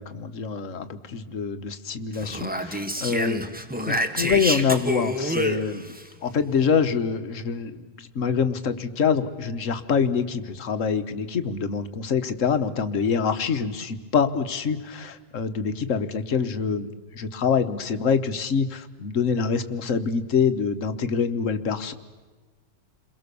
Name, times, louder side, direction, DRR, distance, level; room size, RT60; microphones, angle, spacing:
voice 1, 0.0-3.4 3.8-5.8 6.2-21.9, left 6 dB, 50° left, 10 dB, 1.5 m, -25 dB
Speech, 2.1-6.0, equal, 5° right, 1.2 m, -28 dB
29.5 x 22.5 x 6.9 m, 1.3 s
omnidirectional pair, 1.9 m